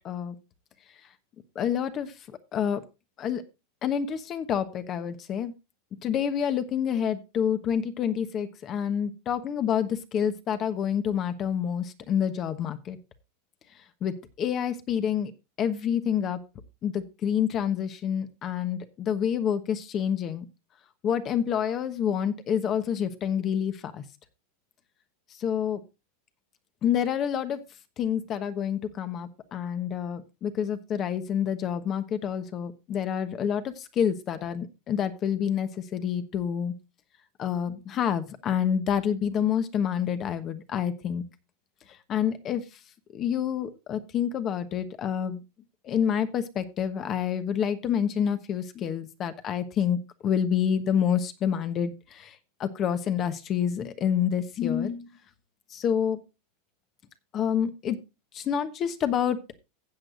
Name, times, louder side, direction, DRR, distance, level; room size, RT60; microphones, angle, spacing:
voice 1, 1.5-2.1 2.5-2.8 3.2-3.4 3.8-5.5 6.0-13.0 14.0-15.3 15.6-16.4 16.8-20.4 21.0-24.0 25.4-25.8 26.8-27.6 28.0-36.7 37.4-41.2 42.1-42.6 43.1-45.4 45.8-52.3 52.6-55.1 55.7-56.2 57.3-58.0 58.3-59.5, left 8 dB, 40° left, 10 dB, 1.1 m, -28 dB
15.5 x 7.8 x 2.5 m, 0.26 s
hypercardioid pair, 105°, 0 cm